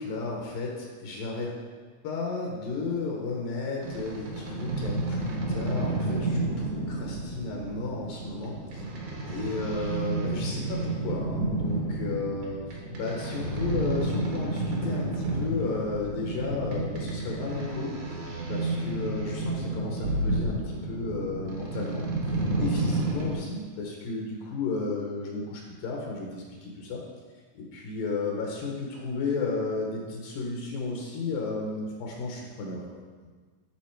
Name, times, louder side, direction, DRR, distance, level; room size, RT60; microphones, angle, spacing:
voice 1, 0.0-1.5 2.0-8.8 9.3-17.9 18.5-27.0 27.5-32.8, left 3 dB, 75° left, -1 dB, 2.6 m, -33 dB
sound 1, 3.8-23.3, right 2 dB, 65° right, 2.3 m, -31 dB
10.5 x 4.0 x 4.5 m, 1.5 s
omnidirectional pair, 4.1 m